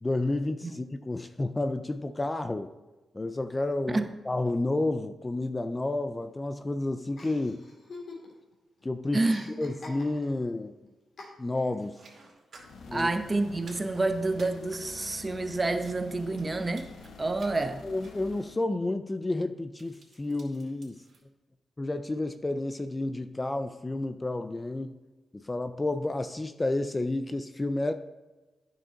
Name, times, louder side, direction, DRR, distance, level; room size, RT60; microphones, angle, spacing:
voice 1, 0.0-2.7 3.1-7.6 8.8-9.2 9.6-10.7 11.4-12.0 12.9-13.1 17.8-21.0 21.8-25.0 25.3-27.9, left 2 dB, 20° left, 10 dB, 0.5 m, -30 dB
Chuckle chortle, 7.2-8.5 8.8-10.5 11.2-11.8, left 3 dB, 60° left, 2.5 m, -46 dB
voice 2, 9.1-9.5 12.9-16.9 17.2-17.8, right 2 dB, 30° right, 8 dB, 0.8 m, -28 dB
sound 1, 11.8-15.4 15.9-16.5 16.8-17.1 17.4-17.7 18.0-18.3 18.6-18.7 19.8-21.2, right 3 dB, 65° right, 2.5 m, -54 dB
sound 2, 12.5-18.6, left 4 dB, 80° left, 1.0 m, -47 dB
9.8 x 6.6 x 3.9 m, 1.2 s
cardioid pair, 75°, 0 cm